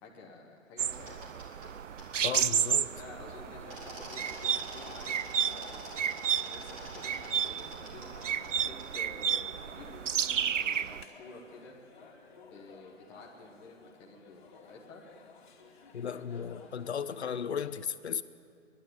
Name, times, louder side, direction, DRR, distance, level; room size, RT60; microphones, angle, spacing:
voice 1, 0.0-1.2 2.5-5.9 6.4-11.8 12.4-14.4 14.7-15.0, left 2 dB, 5° left, 0.8 m, -51 dB
sound 1, 0.8-11.0, right 8 dB, 70° right, 0.7 m, -32 dB
prize wheel, 0.9-1.7 2.0-2.1 3.7-8.5 8.8-8.9 10.6-10.9, right 1 dB, 25° right, 4.1 m, -47 dB
voice 2, 2.2-2.9 15.9-18.2, left 7 dB, 55° left, 0.9 m, -35 dB
sound 2, 2.9-17.5, left 5 dB, 35° left, 2.5 m, -56 dB
29.5 x 11.5 x 9.5 m
hypercardioid pair, 160°, 39 cm